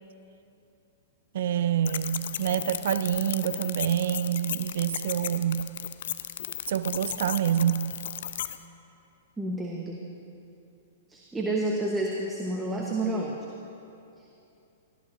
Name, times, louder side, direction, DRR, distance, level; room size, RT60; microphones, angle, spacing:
voice 1, 1.3-5.7 6.7-7.9, right 10 dB, 65° right, 14 dB, 0.4 m, -27 dB
sound 1, 1.8-8.6, left 11 dB, 65° left, 0.5 m, -35 dB
voice 2, 9.4-10.0 11.1-13.4, right 2 dB, 10° right, -2 dB, 1.2 m, -29 dB
18.5 x 14.5 x 2.7 m, 2.7 s
hypercardioid pair, 115°, 0 cm